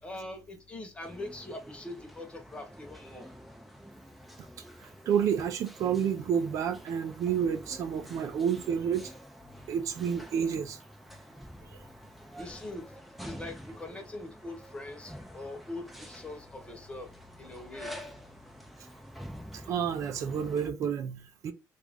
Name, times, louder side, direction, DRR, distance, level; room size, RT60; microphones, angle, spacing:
voice 1, 0.0-3.3 12.4-12.9 13.2-17.1 17.4-17.9, left 2 dB, 20° left, 1.0 m, -42 dB
sound 1, 1.0-20.7, equal, ahead, 0.5 m, -48 dB
voice 2, 4.8-9.1 9.7-10.8 19.5-21.5, right 8 dB, 55° right, 0.5 m, -30 dB
3.0 x 2.5 x 3.4 m
cardioid pair, 145°, 6 cm